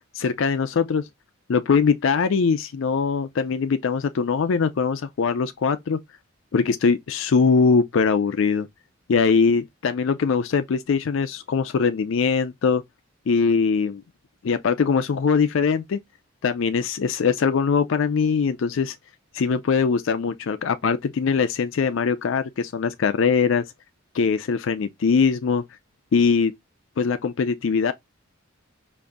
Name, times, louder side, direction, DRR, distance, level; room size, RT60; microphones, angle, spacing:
voice 1, 0.1-1.0 1.5-6.0 6.5-8.7 9.1-12.8 13.3-14.0 14.4-16.0 16.4-19.0 19.3-23.6 24.1-25.6 26.1-26.5 27.0-27.9, left 5 dB, 65° left, 0.4 m, -21 dB
5.2 x 2.5 x 3.4 m
head